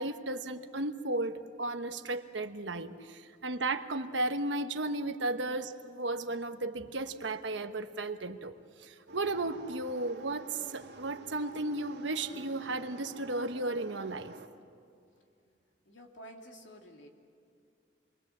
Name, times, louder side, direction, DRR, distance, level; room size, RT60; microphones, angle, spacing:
voice 1, 0.0-8.5 8.8-14.3, right 2 dB, 90° right, 8 dB, 1.2 m, -34 dB
sound 1, 9.1-14.5, right 3 dB, 65° right, 1.8 m, -49 dB
voice 2, 15.8-17.1, equal, 90° left, 2 dB, 2.8 m, -50 dB
28.5 x 22.0 x 7.4 m, 2.4 s
head